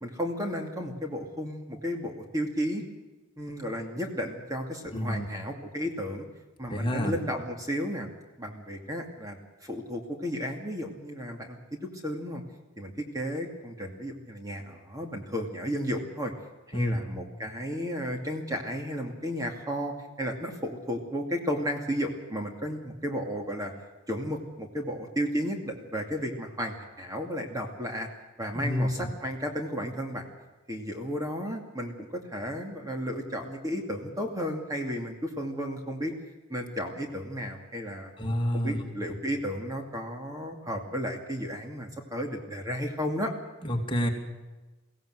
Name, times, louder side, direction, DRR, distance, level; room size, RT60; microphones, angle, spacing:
voice 1, 0.0-2.8 3.4-6.3 6.6-8.1 8.4-12.4 12.8-16.3 16.7-23.7 24.1-28.1 28.4-30.3 30.7-36.1 36.5-38.1 38.5-43.3, equal, 15° right, 3 dB, 2.5 m, -33 dB
voice 2, 4.9-5.2 6.7-7.1 16.7-17.0 28.5-28.8 38.2-38.8 43.6-44.1, equal, 25° left, 1 dB, 2.8 m, -28 dB
23.0 x 16.5 x 8.0 m, 1.2 s
head